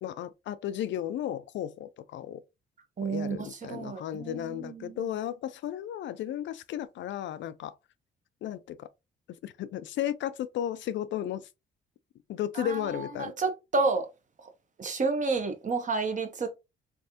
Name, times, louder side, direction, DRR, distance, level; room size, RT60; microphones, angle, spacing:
voice 1, 0.0-2.4 3.0-7.7 8.4-8.9 9.4-11.5 12.3-13.3, left 11 dB, 70° left, 0.4 m, -34 dB
voice 2, 3.0-5.1 12.5-14.1 14.4-14.5 14.8-16.5, right 4 dB, 40° right, 1.0 m, -30 dB
3.4 x 3.3 x 2.7 m
cardioid pair, 90°, 20 cm